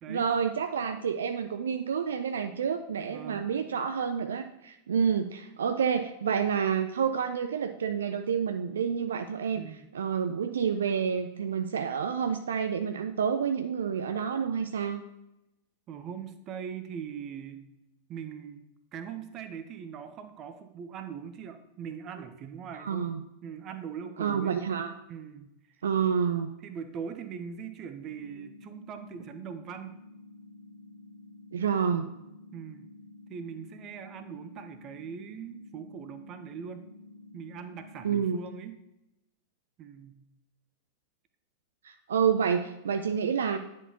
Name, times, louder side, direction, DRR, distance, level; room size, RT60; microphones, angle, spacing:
voice 1, 0.1-9.6 9.9-15.1 22.7-23.2 24.2-24.9 25.8-26.5 31.5-32.1 38.0-38.4 41.8-43.6, right 7 dB, 65° right, 8 dB, 0.3 m, -29 dB
voice 2, 3.1-3.5 9.5-9.9 15.9-17.6 18.1-18.6 18.9-23.1 23.4-24.6 25.1-25.5 26.6-30.0 32.5-32.8 33.3-36.9 37.3-38.7 39.8-40.2, right 7 dB, 35° right, 9 dB, 0.6 m, -41 dB
sound 1, 28.0-38.1, left 2 dB, 85° left, 1.9 m, -51 dB
9.7 x 4.5 x 2.8 m, 0.89 s
figure-of-eight pair, 90°, 0 cm